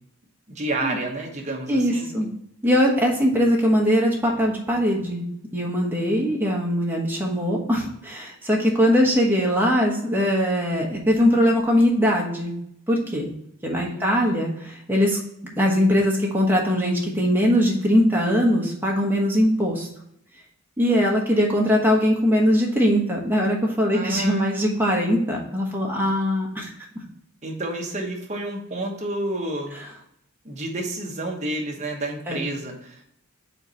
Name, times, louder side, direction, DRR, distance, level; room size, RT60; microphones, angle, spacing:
voice 1, 0.5-2.1 13.7-14.4 23.9-24.6 27.4-29.8 30.4-33.0, right 2 dB, 35° right, 0 dB, 1.0 m, -30 dB
voice 2, 1.7-2.3 2.6-5.2 5.5-12.5 12.9-13.3 13.6-15.2 15.6-19.9 20.8-26.7 32.3-32.4, equal, 10° right, -2 dB, 1.2 m, -21 dB
4.5 x 3.9 x 5.4 m, 0.73 s
head